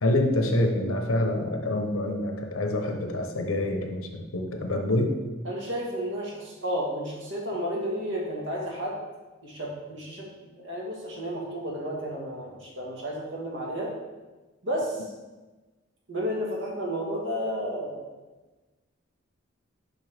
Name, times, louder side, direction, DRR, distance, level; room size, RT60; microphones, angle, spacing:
voice 1, 0.0-5.1, left 1 dB, 85° left, 4 dB, 0.9 m, -26 dB
voice 2, 5.4-9.0 9.4-10.3 10.6-13.9 14.6-15.1 16.1-18.1, equal, 60° right, -2 dB, 1.6 m, -32 dB
6.5 x 5.6 x 3.4 m, 1.2 s
head